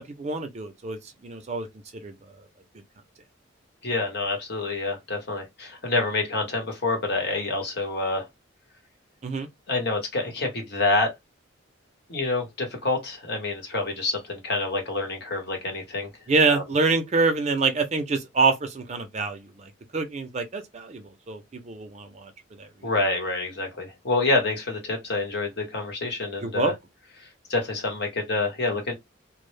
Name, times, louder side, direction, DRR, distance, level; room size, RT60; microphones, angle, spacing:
voice 1, 0.0-1.7 2.0-2.1 9.2-9.5 16.3-22.3 22.6-22.7 26.4-26.7, right 4 dB, 35° right, 0.4 m, -26 dB
voice 2, 3.8-8.3 9.7-11.1 12.1-16.1 16.5-16.6 22.8-26.7 27.5-28.9, left 2 dB, 55° left, 1.0 m, -27 dB
2.0 x 2.0 x 3.1 m
head